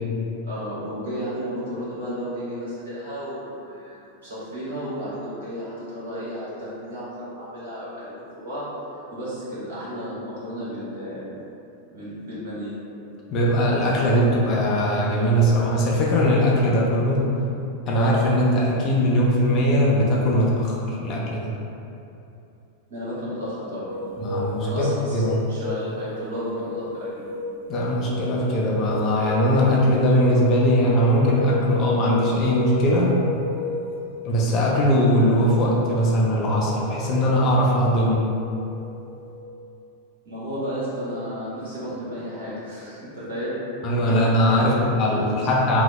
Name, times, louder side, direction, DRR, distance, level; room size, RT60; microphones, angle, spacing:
voice 1, 0.4-8.7 9.1-11.2 11.9-12.8 22.9-23.9 24.6-27.3 40.2-43.6 43.9-44.0 44.5-44.9, equal, 60° right, -10 dB, 1.2 m, -33 dB
voice 2, 13.3-17.3 17.9-21.5 24.2-25.3 27.7-33.2 34.2-38.3 43.8-45.8, equal, 35° left, -5 dB, 0.5 m, -20 dB
sound 1, 23.9-39.4, left 3 dB, 20° right, 1.5 m, -33 dB
2.8 x 2.0 x 3.3 m, 2.8 s
figure-of-eight pair, 90°, 0 cm